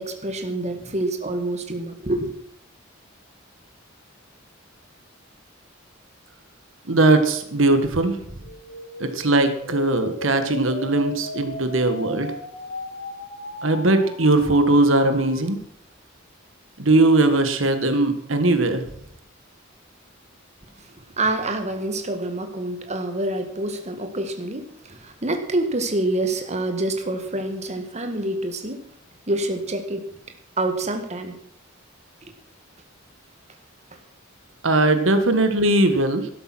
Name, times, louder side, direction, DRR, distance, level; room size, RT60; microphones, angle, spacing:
voice 1, 0.0-2.3 20.8-20.9 21.2-28.8 29.3-30.1 30.6-31.4, right 2 dB, 35° right, 6 dB, 1.7 m, -27 dB
voice 2, 6.9-8.2 9.0-12.3 13.6-15.6 16.8-18.8 34.6-36.3, right 2 dB, 75° right, 8 dB, 1.7 m, -19 dB
sound 1, 8.4-15.4, left 2 dB, 65° left, 2.9 m, -37 dB
12.5 x 12.0 x 6.2 m, 0.68 s
head